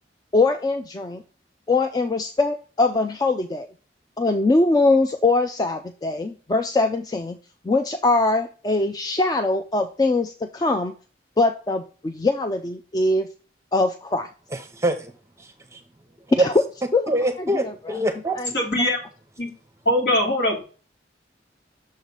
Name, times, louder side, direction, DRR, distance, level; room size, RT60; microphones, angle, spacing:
voice 1, 0.3-1.2 1.7-3.7 4.2-7.4 7.6-10.9 11.4-13.3 13.7-14.3 16.3-16.5 16.9-17.1 17.6-17.7 18.4-18.5, left 2 dB, 20° left, 7 dB, 0.3 m, -22 dB
voice 2, 14.5-15.1 15.4-15.8 16.4-16.5 17.1-18.4, right 1 dB, 15° right, 6 dB, 0.7 m, -24 dB
voice 3, 18.5-19.0 19.4-19.5 19.9-20.6, left 1 dB, 70° left, 1 dB, 2.5 m, -21 dB
6.5 x 3.1 x 5.3 m, 0.36 s
head